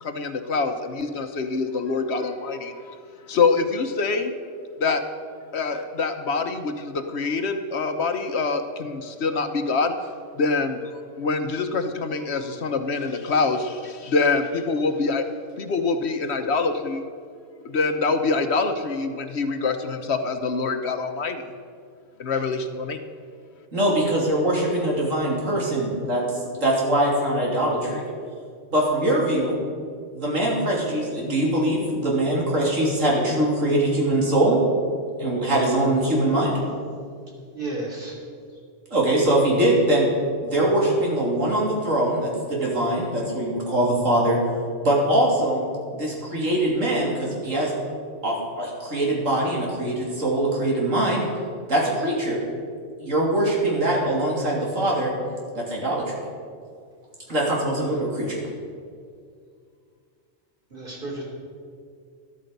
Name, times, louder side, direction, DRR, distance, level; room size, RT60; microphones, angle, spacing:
voice 1, 0.0-3.0 3.3-4.3 4.8-5.0 5.5-9.9 10.3-10.8 11.2-15.3 15.6-17.0 17.6-21.5 22.2-23.0, left 4 dB, 60° left, 7 dB, 1.1 m, -25 dB
voice 2, 23.7-26.2 26.5-28.0 28.7-29.5 30.1-34.6 35.2-36.5 38.9-40.1 40.4-44.4 44.8-45.6 45.9-47.7 48.2-51.2 51.7-52.4 53.0-55.1 55.6-56.2 57.3-58.4, right 1 dB, 85° right, -3 dB, 3.4 m, -22 dB
voice 3, 37.5-38.2 57.8-58.0 60.7-61.2, right 2 dB, 45° right, -3 dB, 3.6 m, -33 dB
13.5 x 12.5 x 5.3 m, 2.2 s
omnidirectional pair, 1.3 m